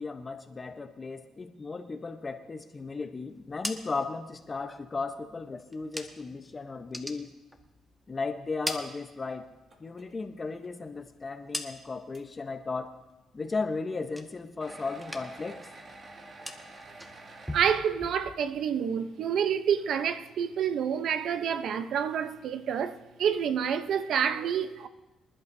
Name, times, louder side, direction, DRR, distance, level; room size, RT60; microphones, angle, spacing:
voice 1, 0.0-7.3 8.1-9.5 9.8-12.9 13.3-15.6, left 4 dB, 30° left, 0.9 m, -35 dB
sound 1, 3.3-6.4 6.7-8.1 8.4-9.7 10.0-12.2 12.5-13.0 13.4-14.7 14.9-15.6 15.8-18.7, equal, 5° right, 1.4 m, -42 dB
sound 2, 9.7-10.1 10.6-10.7 11.3-11.4 12.1-12.2 14.6-17.8, right 2 dB, 45° right, 2.1 m, -48 dB
voice 2, 17.5-24.9, right 8 dB, 70° right, 0.7 m, -28 dB
25.5 x 11.5 x 2.7 m
cardioid pair, 90°, 0 cm